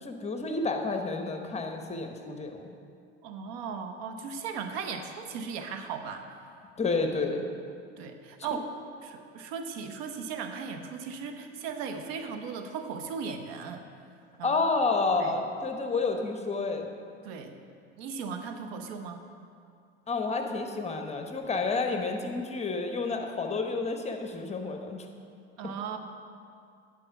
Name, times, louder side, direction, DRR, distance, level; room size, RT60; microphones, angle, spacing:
voice 1, 0.0-2.7 6.8-7.4 14.4-16.9 20.1-25.1, left 3 dB, 20° left, 4 dB, 0.9 m, -30 dB
voice 2, 3.2-6.2 8.0-8.6 9.0-13.8 14.4-14.6 15.2-15.4 17.2-17.5 18.0-19.2 25.6-26.0, right 6 dB, 60° right, 6 dB, 0.9 m, -37 dB
9.8 x 5.2 x 5.8 m, 2.4 s
hypercardioid pair, 80°, 34 cm